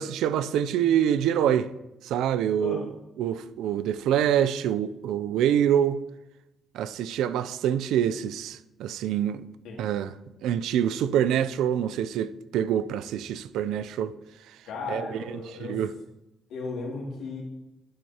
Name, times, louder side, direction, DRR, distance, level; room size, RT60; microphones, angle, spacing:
voice 1, 0.0-1.7 2.0-2.9 3.2-6.0 6.7-9.5 9.8-10.1 10.4-14.1 14.9-15.2 15.6-15.9, right 10 dB, 85° right, 0.4 m, -25 dB
voice 2, 14.6-15.8 16.5-17.4, left 3 dB, 85° left, 2.4 m, -35 dB
12.0 x 6.4 x 2.9 m
cardioid pair, 90°, 0 cm